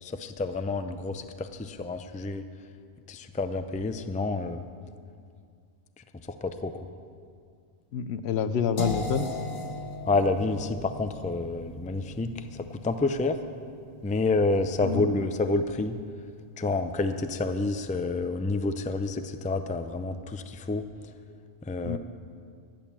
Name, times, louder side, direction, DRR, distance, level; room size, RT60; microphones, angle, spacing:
voice 1, 0.0-2.4 3.1-4.6 6.4-6.9 10.1-13.4 14.0-16.0 16.6-20.9 21.7-22.0, left 3 dB, 15° left, 9 dB, 0.3 m, -29 dB
voice 2, 7.9-9.3 14.8-15.1 21.8-22.0, left 7 dB, 80° left, 12 dB, 0.9 m, -28 dB
sound 1, 8.8-14.7, left 2 dB, 55° left, 1.2 m, -38 dB
13.5 x 9.2 x 7.3 m, 2.2 s
omnidirectional pair, 1.1 m